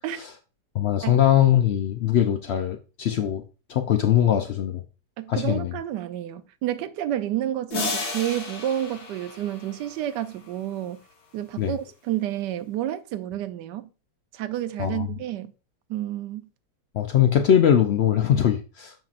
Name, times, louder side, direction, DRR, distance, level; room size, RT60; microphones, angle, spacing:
voice 1, 0.7-3.4 3.7-4.8 5.3-5.7 11.6-11.8 14.8-15.1 16.9-18.9, left 10 dB, 85° left, 0.5 m, -21 dB
voice 2, 5.2-11.0 11.3-13.9 14.3-15.5 15.9-16.5, right 12 dB, 80° right, 1.2 m, -30 dB
sound 1, 7.7-10.5, left 3 dB, 65° left, 2.0 m, -33 dB
7.1 x 5.7 x 2.5 m
omnidirectional pair, 1.9 m